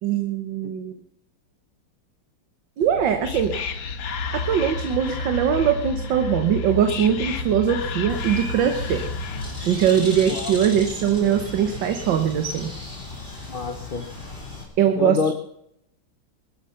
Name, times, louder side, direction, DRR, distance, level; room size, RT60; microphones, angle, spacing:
voice 1, 0.0-1.0 2.8-3.6 4.3-9.1 9.6-12.7 14.8-15.3, right 8 dB, 70° right, 7 dB, 1.8 m, -21 dB
Whispering, 2.8-9.7, left 4 dB, 80° left, 1.9 m, -31 dB
Bird, 8.1-14.6, left 2 dB, 25° left, 3.7 m, -35 dB
voice 2, 13.5-14.1 15.0-15.3, left 5 dB, 50° left, 7 dB, 0.6 m, -26 dB
21.5 x 11.5 x 5.7 m, 0.76 s
omnidirectional pair, 2.1 m